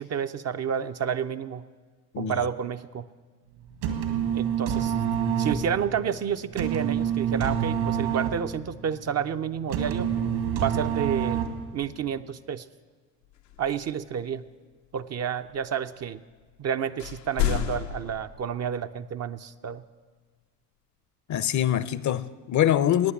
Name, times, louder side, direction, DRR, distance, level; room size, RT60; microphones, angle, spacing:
voice 1, 0.0-1.6 2.2-3.0 4.3-4.9 5.4-10.1 10.6-11.4 11.7-12.7 13.6-14.4 14.9-16.2 16.6-19.8, right 8 dB, 35° right, 9 dB, 0.5 m, -30 dB
sound 1, 3.6-11.8, right 8 dB, 70° right, 2.1 m, -27 dB
sound 2, 13.2-14.5 15.4-16.2 16.5-16.6 16.8-18.8, left 12 dB, 85° left, 0.9 m, -32 dB
voice 2, 21.3-23.1, left 10 dB, 40° left, 17 dB, 0.6 m, -24 dB
15.0 x 9.6 x 8.4 m, 1.4 s
hypercardioid pair, 60°, 47 cm